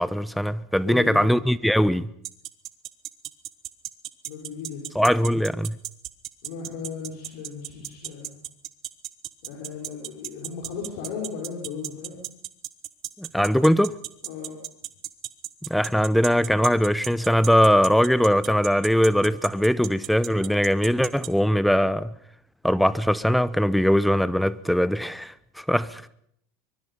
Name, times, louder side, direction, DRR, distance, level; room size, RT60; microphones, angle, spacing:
voice 1, 0.0-2.1 4.9-5.8 13.2-14.0 15.7-22.1 22.6-26.1, equal, ahead, 0.8 m, -21 dB
voice 2, 0.8-1.3 4.3-4.9 6.4-8.3 9.4-12.2 14.2-14.6, left 6 dB, 65° left, 5.7 m, -36 dB
sound 1, 2.2-21.3, right 14 dB, 50° right, 1.3 m, -34 dB
24.0 x 23.0 x 5.7 m
hypercardioid pair, 80°, 0 cm